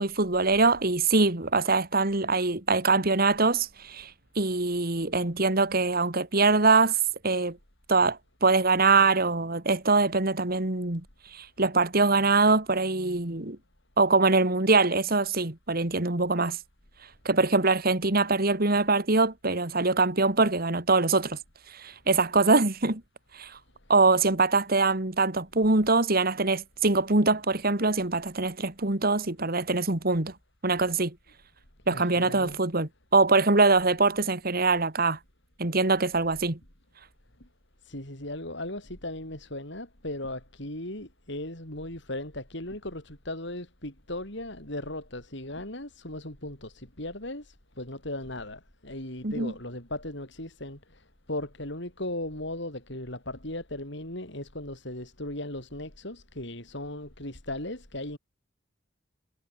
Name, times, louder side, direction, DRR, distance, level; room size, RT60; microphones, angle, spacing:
voice 1, 0.0-4.1 4.4-7.0 7.2-7.6 7.9-11.0 11.3-13.6 14.0-16.6 17.2-21.4 21.7-23.0 23.3-23.5 23.9-30.3 30.6-31.1 31.9-35.2 35.6-36.6 49.2-49.5, right 3 dB, 50° right, 2.3 m, -23 dB
voice 2, 31.9-32.6 37.8-51.0 51.3-58.2, left 1 dB, 60° left, 8.0 m, -37 dB
head